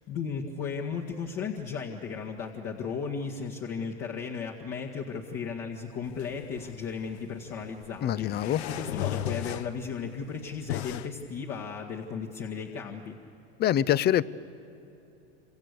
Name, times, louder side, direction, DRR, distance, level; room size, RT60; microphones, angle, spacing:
voice 1, 0.1-13.2, left 6 dB, 50° left, -2 dB, 2.0 m, -35 dB
sound 1, 6.0-11.1, left 11 dB, 80° left, 1.0 m, -37 dB
voice 2, 8.0-8.6 13.6-14.2, left 11 dB, 30° left, 19 dB, 0.6 m, -24 dB
27.5 x 26.0 x 6.8 m, 2.9 s
hypercardioid pair, 100°, 32 cm